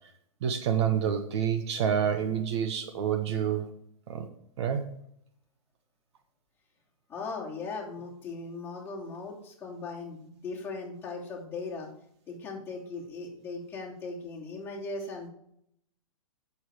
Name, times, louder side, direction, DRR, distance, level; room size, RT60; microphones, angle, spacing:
voice 1, 0.4-3.7 4.1-4.3 4.6-4.9, right 8 dB, 50° right, 8 dB, 1.1 m, -28 dB
voice 2, 7.1-11.9 12.3-15.3, left 3 dB, 10° left, -4 dB, 2.8 m, -38 dB
8.6 x 7.1 x 4.8 m, 0.71 s
hypercardioid pair, 145°, 18 cm